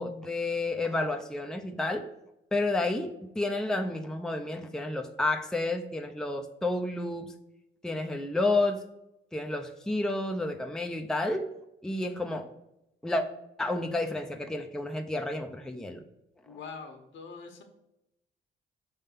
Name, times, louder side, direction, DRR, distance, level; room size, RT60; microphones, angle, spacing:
voice 1, 0.0-2.1 2.5-7.3 7.8-8.8 9.3-11.5 11.8-12.4 13.0-13.3 13.6-16.0, left 2 dB, 5° left, 5 dB, 0.6 m, -30 dB
voice 2, 16.4-17.6, left 5 dB, 70° left, 5 dB, 1.3 m, -44 dB
5.4 x 3.7 x 5.5 m, 0.87 s
cardioid pair, 90°, 20 cm